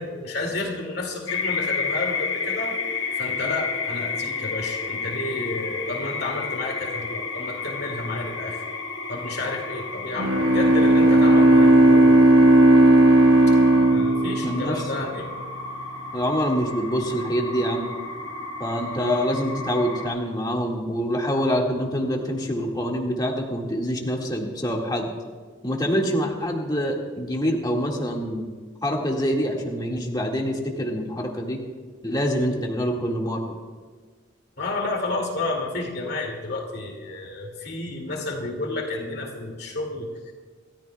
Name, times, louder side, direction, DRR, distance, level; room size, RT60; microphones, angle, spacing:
voice 1, 0.0-2.7 3.2-8.6 9.1-12.2 13.5-13.6 13.9-15.3 34.6-40.3, left 2 dB, 55° left, 1 dB, 2.3 m, -31 dB
sound 1, 1.3-20.1, left 4 dB, 80° left, 1.8 m, -32 dB
Bowed string instrument, 10.2-15.4, right 1 dB, 85° right, 1.2 m, -16 dB
voice 2, 14.4-15.1 16.1-17.9 18.6-25.1 25.6-28.5 28.8-31.6 32.0-33.4, equal, 20° left, -1 dB, 1.8 m, -25 dB
27.0 x 14.0 x 2.3 m, 1.5 s
head